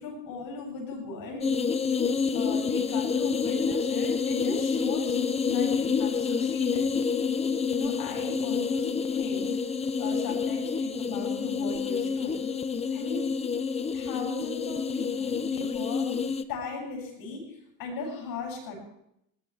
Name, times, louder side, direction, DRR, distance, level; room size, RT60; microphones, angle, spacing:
voice 1, 0.0-1.6 2.3-6.9 7.8-9.6 10.0-12.4 12.9-13.2 13.9-16.2 16.5-18.7, left 4 dB, 60° left, 0 dB, 8.0 m, -38 dB
sound 1, 1.4-16.4, left 5 dB, 15° left, 0.6 m, -28 dB
21.5 x 18.0 x 3.5 m, 0.76 s
cardioid pair, 165°, 39 cm